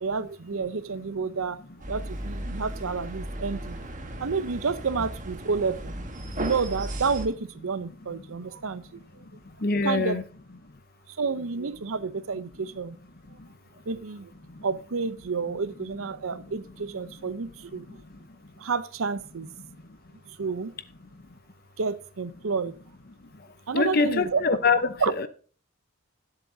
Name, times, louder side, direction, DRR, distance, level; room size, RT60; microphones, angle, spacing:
voice 1, 0.0-1.6 1.9-3.8 4.2-5.9 6.4-8.8 9.8-10.2 11.2-13.0 13.9-14.3 14.6-17.9 18.6-19.5 20.4-20.7 21.8-22.7 23.7-24.4 25.0-25.1, right 5 dB, 85° right, 0.7 m, -29 dB
sound 1, 1.8-7.3, right 1 dB, 40° right, 1.4 m, -36 dB
voice 2, 9.6-10.2 23.7-25.3, left 4 dB, 45° left, 0.8 m, -24 dB
19.5 x 7.8 x 2.7 m
head